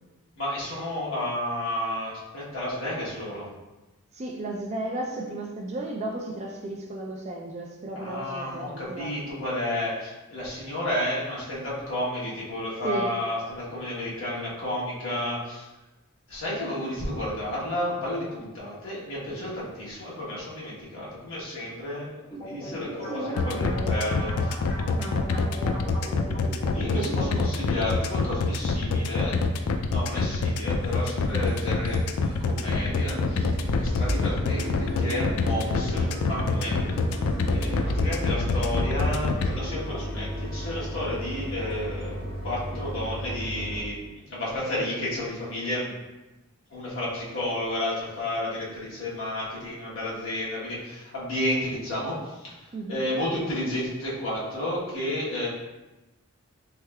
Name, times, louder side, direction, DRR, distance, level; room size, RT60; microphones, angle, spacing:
voice 1, 0.4-3.5 7.9-15.7 16.3-24.6 26.7-29.5 29.9-37.0 37.5-42.2 42.4-45.9 46.7-55.5, left 1 dB, 60° left, -7 dB, 1.2 m, -32 dB
voice 2, 4.1-9.2 12.8-13.1 23.1-24.0 24.8-25.9 26.9-27.4 52.7-53.0, right 2 dB, 30° right, 1 dB, 0.3 m, -34 dB
sound 1, 22.3-27.4, equal, 30° left, 1.1 m, -39 dB
sound 2, 23.4-39.5, left 4 dB, 85° left, 0.3 m, -26 dB
sound 3, 30.2-30.3 30.8-31.1 31.5-31.6 31.9-32.0 32.2-43.8, equal, 85° right, 1.1 m, -33 dB
3.4 x 3.2 x 2.2 m, 1.1 s
head